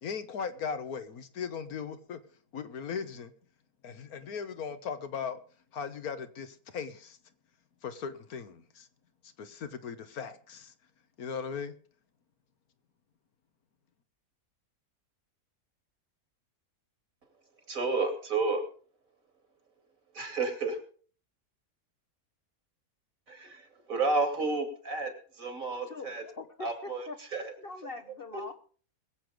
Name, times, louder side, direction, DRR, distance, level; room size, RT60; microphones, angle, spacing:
voice 1, 0.0-2.2 2.5-3.3 3.8-5.4 5.7-7.2 7.8-8.9 9.4-10.7 11.2-11.7, left 6 dB, 80° left, 1.6 m, -38 dB
voice 2, 17.7-18.6 20.1-20.8 23.3-26.2 26.6-27.5 28.3-28.5, right 3 dB, 65° right, 3.1 m, -31 dB
voice 3, 25.9-27.2 27.6-28.5, left 3 dB, 45° left, 1.1 m, -43 dB
21.5 x 7.9 x 5.1 m
omnidirectional pair, 1.5 m